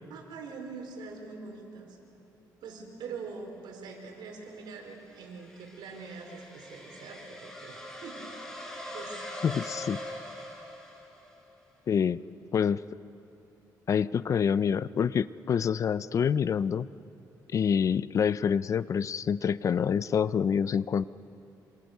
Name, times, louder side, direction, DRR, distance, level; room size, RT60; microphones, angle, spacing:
voice 1, 0.1-2.0 2.6-8.5 8.9-9.2, right 4 dB, 80° right, 3 dB, 4.5 m, -43 dB
sound 1, 4.4-11.4, left 1 dB, 5° left, 5.8 m, -43 dB
voice 2, 9.4-10.0 11.9-12.2 12.5-12.8 13.9-16.9 17.5-21.1, left 7 dB, 45° left, 17 dB, 0.5 m, -26 dB
27.5 x 26.0 x 6.7 m, 2.7 s
cardioid pair, 115°, 7 cm